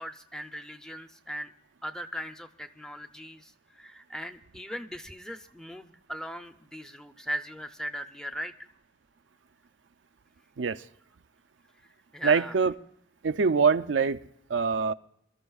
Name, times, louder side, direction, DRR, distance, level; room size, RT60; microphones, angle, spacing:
voice 1, 0.0-1.5 1.8-8.5 12.1-12.6, equal, 5° left, 0.6 m, -39 dB
voice 2, 12.2-12.7 13.2-14.2 14.5-14.9, right 5 dB, 75° right, 0.5 m, -24 dB
26.5 x 13.0 x 2.4 m
head